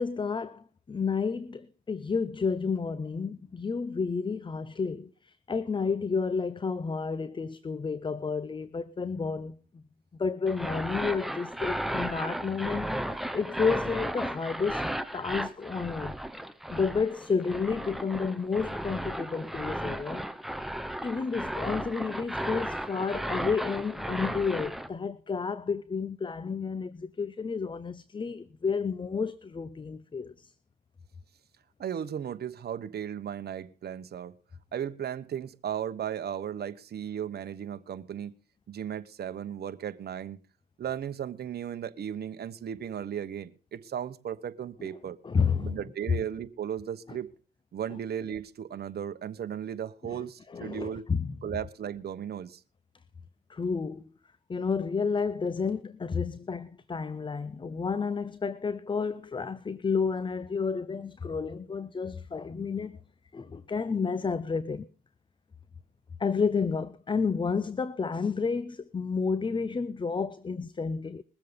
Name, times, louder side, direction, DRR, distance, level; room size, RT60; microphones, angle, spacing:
voice 1, 0.0-9.8 10.2-16.1 16.7-20.2 21.0-30.5 44.8-44.9 45.2-45.8 47.1-47.2 50.0-51.4 53.5-54.0 54.5-63.0 63.3-64.9 66.2-71.2, left 5 dB, 25° left, 0.6 m, -31 dB
sound 1, 10.5-24.9, right 1 dB, ahead, 1.0 m, -34 dB
voice 2, 31.8-34.3 34.7-38.3 38.7-40.4 40.8-45.2 45.6-47.3 47.7-51.1 51.4-52.6, right 9 dB, 55° right, 1.2 m, -36 dB
21.5 x 7.6 x 5.3 m
cardioid pair, 90°, 20 cm